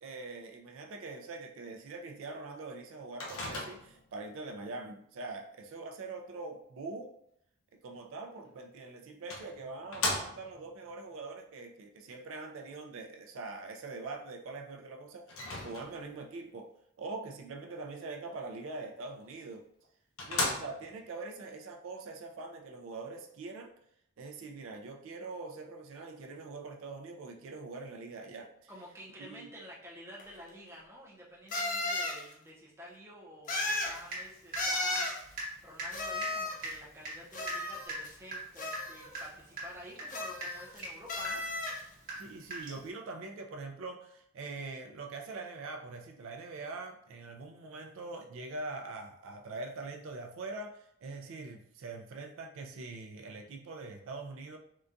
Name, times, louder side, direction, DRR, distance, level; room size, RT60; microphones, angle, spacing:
voice 1, 0.0-7.1 7.8-16.7 17.0-19.6 20.2-23.7 24.2-28.7 29.2-29.5 42.2-54.6, right 3 dB, 70° right, 2 dB, 0.4 m, -43 dB
Microwave oven, 3.2-4.1 8.4-8.5 9.3-10.7 15.3-16.2 19.3-19.4 19.8-19.9 20.2-21.0, left 2 dB, 75° left, 0.7 m, -36 dB
voice 2, 28.7-41.8, equal, 10° right, -4 dB, 0.5 m, -50 dB
sound 1, 30.2-30.3 31.5-32.2 33.5-34.0 34.6-35.2 35.9-36.7 37.3-38.1 38.6-39.2 40.1-40.8 41.1-41.8, left 2 dB, 35° left, 0.5 m, -34 dB
Water tap faucet / Drip, 33.6-34.3 34.5-42.9, right 2 dB, 40° right, 1.1 m, -41 dB
3.8 x 2.2 x 2.5 m, 0.73 s
head